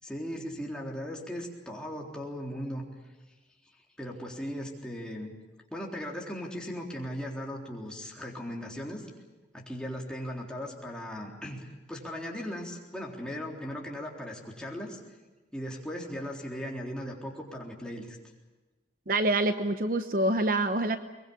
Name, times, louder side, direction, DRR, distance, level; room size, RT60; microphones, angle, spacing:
voice 1, 0.0-2.8 4.0-5.3 5.7-9.1 9.5-15.0 15.5-18.2, equal, 5° left, -2 dB, 3.7 m, -38 dB
voice 2, 19.1-21.0, right 2 dB, 50° right, 9 dB, 0.9 m, -26 dB
23.0 x 21.5 x 8.7 m, 1.2 s
head